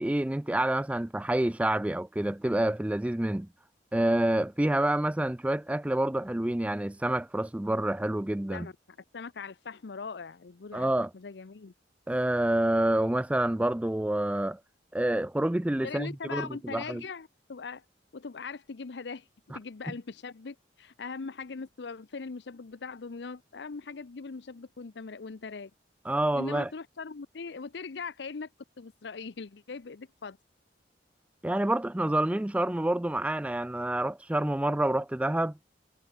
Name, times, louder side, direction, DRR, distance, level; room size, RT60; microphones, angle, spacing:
voice 1, 0.0-3.5 3.9-8.7 10.7-11.1 12.1-14.6 14.9-17.0 19.5-19.6 26.1-26.7 31.4-35.6, right 1 dB, 5° right, 0.3 m, -28 dB
voice 2, 9.1-11.7 15.8-17.8 18.1-25.7 26.3-28.5 28.8-30.4, left 4 dB, 70° left, 0.6 m, -40 dB
head